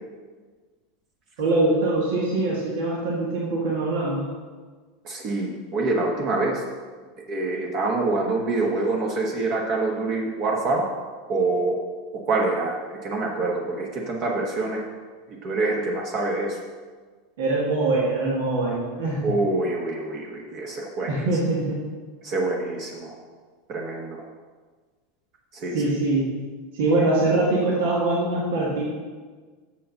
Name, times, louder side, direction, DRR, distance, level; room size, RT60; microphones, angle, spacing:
voice 1, 1.4-4.2 17.4-19.3 21.1-21.8 25.7-26.3 26.7-28.8, right 2 dB, 80° right, -4 dB, 1.7 m, -23 dB
voice 2, 5.0-6.6 7.3-10.8 11.3-11.8 12.3-14.8 15.4-16.6 19.2-21.2 22.2-23.2 23.7-24.2 25.5-25.8, right 2 dB, 45° right, -1 dB, 1.2 m, -26 dB
6.9 x 5.5 x 6.5 m, 1.5 s
supercardioid pair, 130°, 0 cm